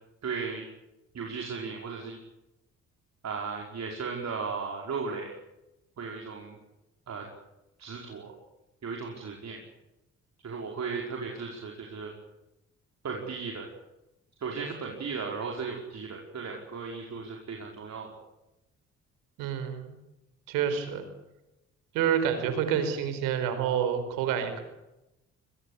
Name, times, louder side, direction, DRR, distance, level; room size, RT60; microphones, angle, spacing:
voice 1, 0.2-0.7 1.1-2.2 3.2-5.3 6.0-6.6 7.1-7.3 7.8-8.3 8.8-9.6 10.4-12.1 13.0-13.7 14.4-18.1, right 5 dB, 55° right, 0 dB, 5.5 m, -36 dB
voice 2, 19.4-20.0 20.5-21.1 21.9-24.6, right 8 dB, 90° right, 9 dB, 4.7 m, -28 dB
24.5 x 21.5 x 8.4 m, 0.94 s
supercardioid pair, 60°, 32 cm